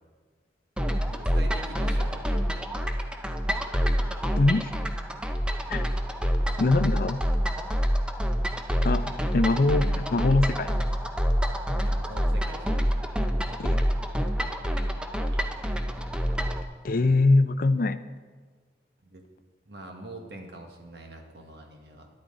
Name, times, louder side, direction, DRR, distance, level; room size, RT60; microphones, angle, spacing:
sound 1, 0.8-16.6, equal, 5° right, 0.5 m, -27 dB
voice 1, 1.1-2.5 11.8-12.9 15.3-15.8 17.0-17.2 19.0-19.2 19.7-22.1, right 1 dB, 65° right, 3 dB, 1.4 m, -44 dB
voice 2, 4.4-4.7 5.7-5.8 6.6-7.2 8.8-10.8 13.6-13.8 16.8-18.0, left 2 dB, 50° left, 13 dB, 0.4 m, -23 dB
12.5 x 10.5 x 3.8 m, 1.5 s
head